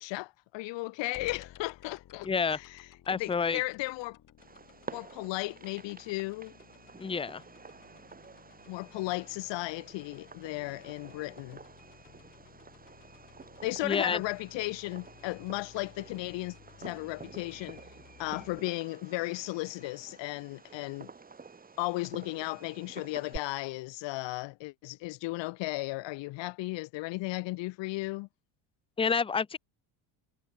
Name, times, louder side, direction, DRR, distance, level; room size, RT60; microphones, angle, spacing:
voice 1, 0.0-2.9 3.1-4.2 4.9-6.6 8.7-11.6 13.6-17.8 18.2-21.1 21.8-28.3, left 21 dB, 65° left, 1.6 m, -35 dB
sound 1, 1.1-18.6, left 11 dB, 40° left, 4.9 m, -56 dB
voice 2, 2.2-2.6 3.1-3.6 7.0-7.4 13.8-14.2 29.0-29.6, left 5 dB, 10° left, 0.9 m, -28 dB
Fireworks, 4.4-23.4, right 4 dB, 20° right, 7.0 m, -50 dB
cardioid pair, 150°, 47 cm